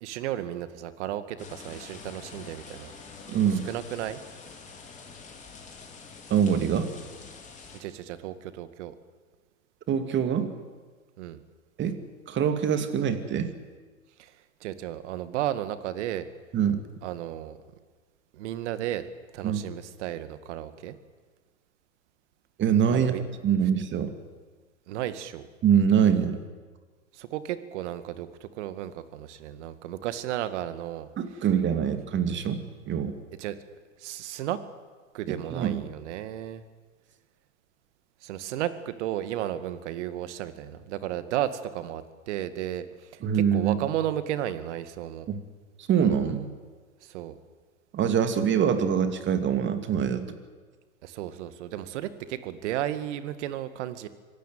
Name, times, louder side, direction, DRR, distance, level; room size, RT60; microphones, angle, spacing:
voice 1, 0.0-2.9 3.7-4.2 7.7-8.9 11.2-11.4 14.2-14.3 14.6-16.3 17.0-17.6 18.3-19.1 19.3-21.0 22.9-23.2 24.9-25.4 27.1-31.1 33.4-33.6 34.0-34.6 35.1-36.6 38.2-45.3 47.0-47.4 51.0-54.1, right 12 dB, 60° right, 12 dB, 2.1 m, -33 dB
sound 1, 1.4-7.8, left 5 dB, 20° left, 4.6 m, -46 dB
voice 2, 3.3-3.7 6.3-6.9 9.9-10.5 11.8-12.0 12.3-13.5 16.5-16.8 19.4-19.6 22.6-23.1 23.4-24.1 25.6-26.4 31.2-33.2 35.3-35.8 43.2-43.9 45.3-45.4 45.8-46.5 47.9-50.4, right 8 dB, 30° right, 9 dB, 2.7 m, -24 dB
25.0 x 17.0 x 9.4 m, 1.5 s
hypercardioid pair, 110°, 40 cm